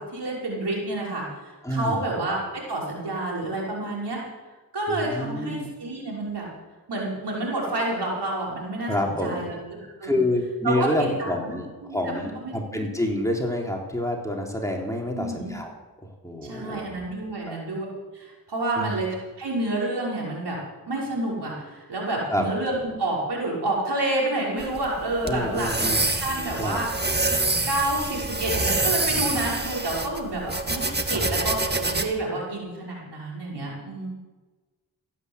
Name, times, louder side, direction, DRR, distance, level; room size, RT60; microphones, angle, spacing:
voice 1, 0.0-4.2 4.7-6.5 6.9-10.3 10.6-11.3 11.8-12.5 15.1-15.5 16.4-17.9 18.1-20.6 20.9-25.7 26.2-26.9 27.7-34.1, right 2 dB, 70° right, -3 dB, 5.7 m, -29 dB
voice 2, 1.6-2.0 4.9-5.7 8.9-9.4 10.0-15.7 16.0-16.8 17.5-17.6 18.8-18.9 22.3-22.5 25.2-26.0 26.6-26.8 31.1-31.4, left 1 dB, 5° left, 0 dB, 3.7 m, -28 dB
sound 1, 24.6-32.1, right 2 dB, 25° right, 1.8 m, -26 dB
16.5 x 9.2 x 8.2 m, 1.2 s
cardioid pair, 45°, 41 cm